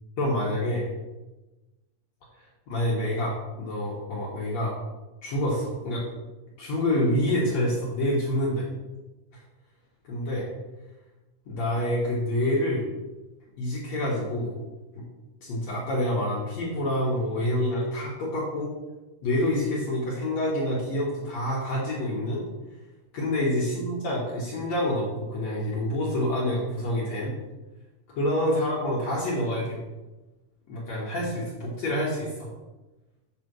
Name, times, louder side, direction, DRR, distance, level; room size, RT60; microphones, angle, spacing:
voice 1, 0.2-0.9 2.7-4.8 5.2-6.0 6.6-8.7 10.0-10.5 11.5-12.8 13.6-14.5 14.9-15.0 15.4-18.7 19.2-22.4 23.1-27.3 28.1-29.8 30.7-32.5, left 1 dB, 70° left, -5 dB, 1.6 m, -27 dB
8.6 x 4.2 x 6.1 m, 1.1 s
omnidirectional pair, 5.3 m